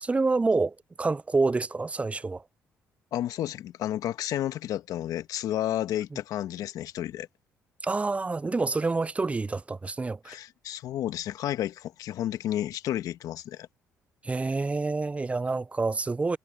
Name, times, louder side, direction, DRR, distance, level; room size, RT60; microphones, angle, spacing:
voice 1, 0.0-2.4 7.8-10.4 14.2-16.4, right 3 dB, 20° right, 0.4 m, -27 dB
voice 2, 3.1-7.3 10.2-13.7, left 12 dB, 70° left, 1.5 m, -31 dB
hypercardioid pair, 55°, 7 cm